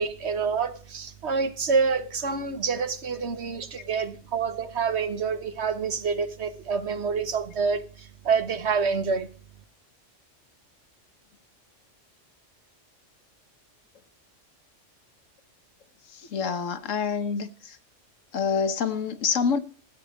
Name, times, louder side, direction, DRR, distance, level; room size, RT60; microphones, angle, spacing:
voice 1, 0.0-9.3, right 5 dB, 60° right, 1.4 m, -27 dB
voice 2, 16.1-17.8 18.3-19.6, left 6 dB, 85° left, 1.5 m, -27 dB
13.5 x 8.8 x 5.1 m
omnidirectional pair, 1.3 m